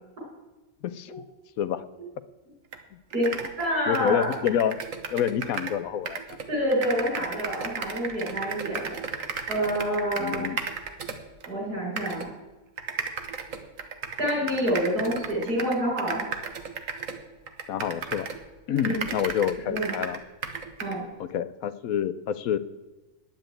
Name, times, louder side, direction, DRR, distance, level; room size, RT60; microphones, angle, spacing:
voice 1, 0.8-1.1 1.6-1.8 3.9-4.8 5.1-6.4 10.1-10.6 17.7-18.3 18.7-20.2 21.2-22.6, left 9 dB, 70° left, 14 dB, 1.0 m, -28 dB
sound 1, 2.7-2.8 3.1-5.8 6.1-11.5 12.0-12.3 12.8-18.5 18.8-21.0, right 6 dB, 60° right, 1.5 m, -34 dB
voice 2, 3.6-4.3 6.5-8.9 9.5-10.4 11.5-12.3 14.2-16.2 18.8-19.0 19.7-19.9 20.8-21.0, equal, 85° right, -2 dB, 6.0 m, -27 dB
10.0 x 8.9 x 8.8 m, 1.1 s
omnidirectional pair, 1.6 m